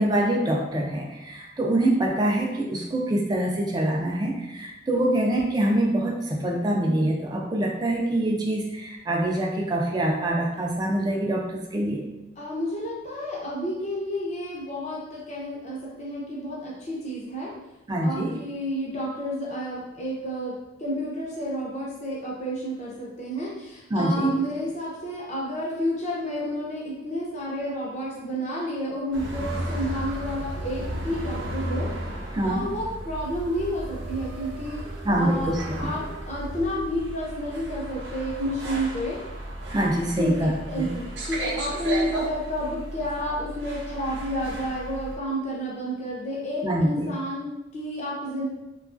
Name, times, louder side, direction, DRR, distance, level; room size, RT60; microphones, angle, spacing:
voice 1, 0.0-12.0 17.9-18.3 23.9-24.3 32.3-32.7 35.0-35.9 39.7-40.5 40.8-40.9 46.6-47.1, right 1 dB, 20° right, 0 dB, 0.3 m, -25 dB
voice 2, 12.4-17.5 18.0-31.9 32.4-34.8 35.2-39.2 40.2-48.5, equal, 35° left, -4 dB, 0.6 m, -30 dB
sound 1, 29.1-45.2, right 1 dB, 60° right, 0.6 m, -34 dB
2.9 x 2.3 x 2.4 m, 0.99 s
head